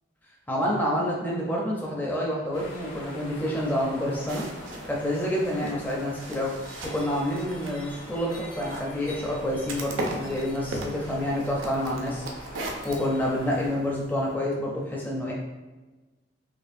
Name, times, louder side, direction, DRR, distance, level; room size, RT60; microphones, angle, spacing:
voice 1, 0.5-4.5 4.9-12.2 12.8-15.3, left 1 dB, 10° left, -4 dB, 0.5 m, -28 dB
sound 1, 2.5-13.7, left 1 dB, 70° left, 1.2 m, -44 dB
sound 2, 4.3-14.3, right 1 dB, 80° right, 0.5 m, -39 dB
4.3 x 2.8 x 2.6 m, 1.2 s
head